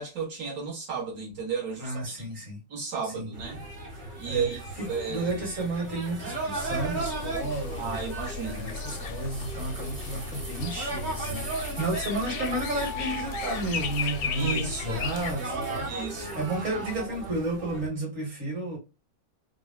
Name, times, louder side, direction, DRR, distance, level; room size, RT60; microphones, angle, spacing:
voice 1, 0.0-2.0 2.7-3.6 4.2-5.3 7.8-8.7 14.3-15.0 15.9-16.4, right 5 dB, 75° right, 1.8 m, -33 dB
voice 2, 1.8-2.6 3.0-3.3 4.3-4.4 4.8-8.0 8.3-15.9 16.1-18.8, right 2 dB, 60° right, 2.2 m, -32 dB
sound 1, 3.3-17.9, right 3 dB, 40° right, 0.8 m, -36 dB
sound 2, 6.5-15.3, left 7 dB, 70° left, 0.8 m, -36 dB
3.7 x 2.2 x 2.3 m
omnidirectional pair, 1.6 m